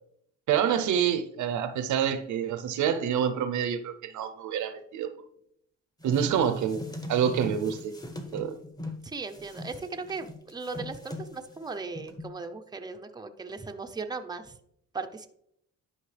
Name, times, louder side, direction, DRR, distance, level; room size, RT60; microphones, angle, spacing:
voice 1, 0.5-5.1 6.0-6.8 7.1-8.0 8.3-8.6, right 8 dB, 75° right, 0.8 m, -27 dB
sound 1, 6.0-9.0 9.3-11.6 12.0-12.3, left 1 dB, 10° left, 1.2 m, -40 dB
voice 2, 9.0-14.6 14.9-15.3, right 4 dB, 15° right, 0.7 m, -37 dB
11.0 x 5.5 x 3.4 m
cardioid pair, 90°, 30 cm